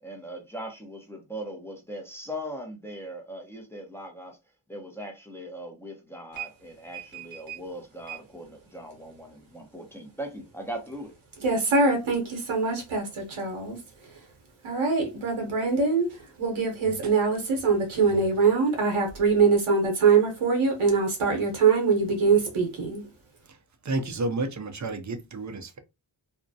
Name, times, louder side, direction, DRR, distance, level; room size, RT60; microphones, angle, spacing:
voice 1, 0.0-4.4 4.7-11.1, equal, 5° left, 0.7 m, -39 dB
voice 2, 6.9-7.6 8.1-8.2 11.4-13.8 14.6-23.0, right 4 dB, 80° right, 0.8 m, -24 dB
voice 3, 23.8-25.8, right 2 dB, 40° right, 0.5 m, -31 dB
2.3 x 2.1 x 2.6 m
wide cardioid pair, 60°, 49 cm